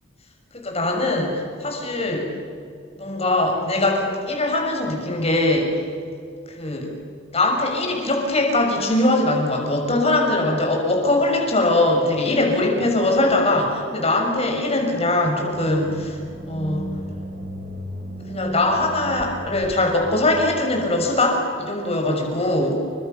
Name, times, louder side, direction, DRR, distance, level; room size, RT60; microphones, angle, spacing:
voice 1, 0.5-2.3 3.0-5.8 6.5-7.0 7.3-16.2 16.5-16.9 18.3-22.8, left 2 dB, 35° left, 1 dB, 6.5 m, -21 dB
sound 1, 15.5-20.6, equal, 50° right, 3.4 m, -34 dB
29.5 x 25.0 x 6.9 m, 2.4 s
head